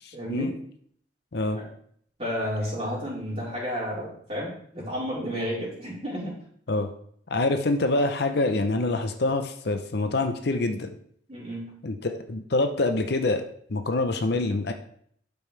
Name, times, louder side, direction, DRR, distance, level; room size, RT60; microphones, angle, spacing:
voice 1, 0.1-0.5 1.5-1.7 2.2-6.3 11.3-11.7, equal, 30° right, -7 dB, 4.1 m, -32 dB
voice 2, 7.3-11.0 11.8-13.4 13.7-14.7, left 2 dB, 55° left, 7 dB, 0.7 m, -25 dB
12.0 x 5.4 x 3.3 m, 0.64 s
head